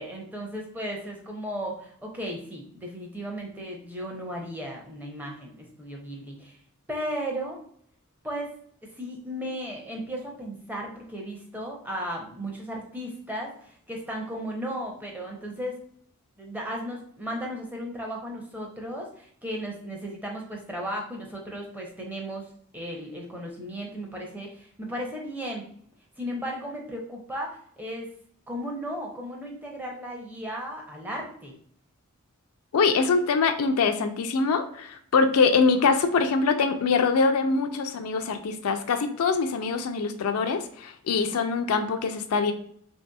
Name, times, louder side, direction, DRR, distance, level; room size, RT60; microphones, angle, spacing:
voice 1, 0.0-6.6 6.9-7.6 8.2-8.5 9.0-15.8 16.4-25.6 26.2-28.1 28.5-31.5, equal, 10° right, 0 dB, 0.5 m, -35 dB
voice 2, 32.7-42.5, left 4 dB, 80° left, 7 dB, 0.4 m, -24 dB
3.2 x 2.7 x 2.2 m, 0.64 s
head